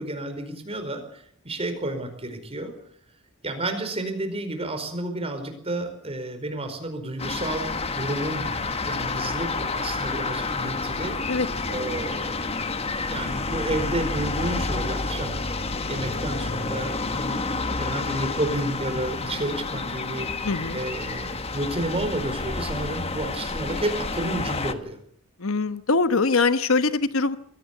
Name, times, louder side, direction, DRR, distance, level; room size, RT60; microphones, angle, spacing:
voice 1, 0.0-2.7 3.4-11.2 11.7-12.4 13.1-15.4 15.9-17.4 17.8-20.3 20.7-25.0, right 1 dB, 30° right, 7 dB, 4.8 m, -31 dB
sound 1, 7.2-24.7, left 3 dB, 30° left, 1.4 m, -29 dB
voice 2, 20.4-20.8 25.4-27.4, left 3 dB, 75° left, 12 dB, 1.1 m, -22 dB
22.5 x 17.5 x 8.4 m, 0.66 s
head